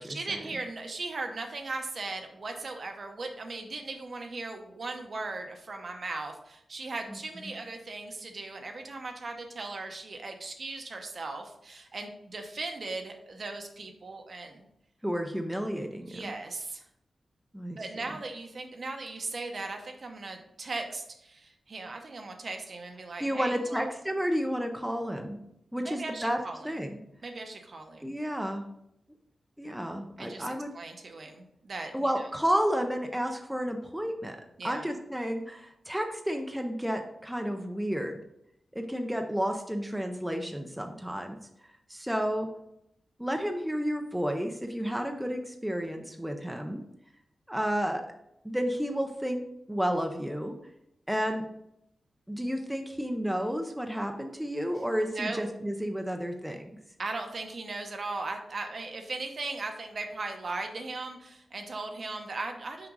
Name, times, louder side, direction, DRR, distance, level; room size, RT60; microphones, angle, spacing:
voice 1, 0.0-14.7 16.0-16.8 17.8-23.8 25.8-26.7 27.2-28.2 30.2-32.3 34.6-34.9 55.1-55.4 57.0-62.9, right 3 dB, 45° right, 4 dB, 0.8 m, -38 dB
voice 2, 15.0-16.3 17.5-17.8 23.2-25.4 25.7-27.0 28.0-28.6 29.6-30.7 31.9-34.4 34.6-38.2 38.7-41.4 41.9-42.5 43.2-46.8 47.5-48.1 48.4-50.5 51.1-51.4 52.3-56.7, equal, 5° right, 4 dB, 0.5 m, -31 dB
5.9 x 5.1 x 3.8 m, 0.79 s
wide cardioid pair, 175°, 0 cm